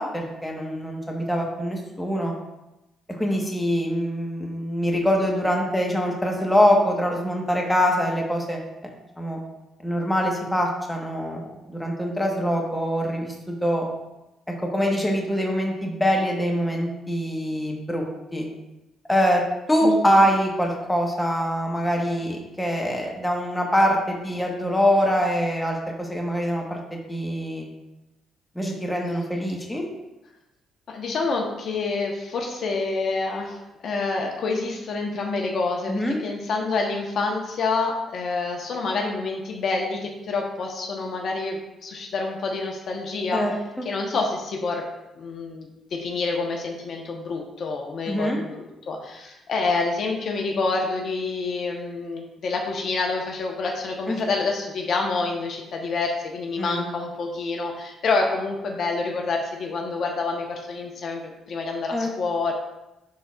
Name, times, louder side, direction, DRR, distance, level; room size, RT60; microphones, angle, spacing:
voice 1, 0.0-2.3 3.2-8.6 9.2-9.4 9.8-11.4 11.7-13.3 13.6-13.9 14.7-18.1 18.3-18.5 19.1-19.4 19.7-26.8 27.1-27.7 28.5-29.8 35.9-36.2 43.3-43.5 43.8-43.9 48.1-48.4 54.1-54.2 56.6-56.8 61.9-62.1, equal, 5° left, 0 dB, 1.2 m, -24 dB
voice 2, 19.8-20.2 30.9-33.6 33.8-43.4 43.8-44.8 45.2-62.5, left 3 dB, 60° left, 1 dB, 1.0 m, -27 dB
11.0 x 3.9 x 2.4 m, 0.97 s
cardioid pair, 90°, 0 cm